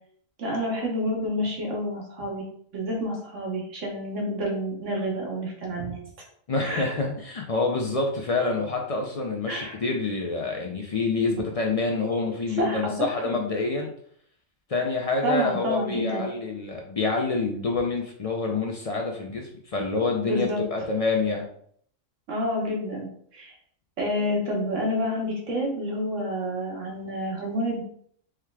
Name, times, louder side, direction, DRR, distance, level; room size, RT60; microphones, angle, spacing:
voice 1, 0.4-2.4 2.7-6.0 6.6-7.0 9.5-9.8 12.6-13.3 15.2-16.2 20.2-20.6 22.3-23.5 24.0-27.8, equal, 75° right, -1 dB, 1.5 m, -29 dB
voice 2, 6.5-13.9 14.7-21.5, left 3 dB, 65° left, 1 dB, 0.3 m, -27 dB
4.5 x 3.5 x 2.3 m, 0.62 s
omnidirectional pair, 1.3 m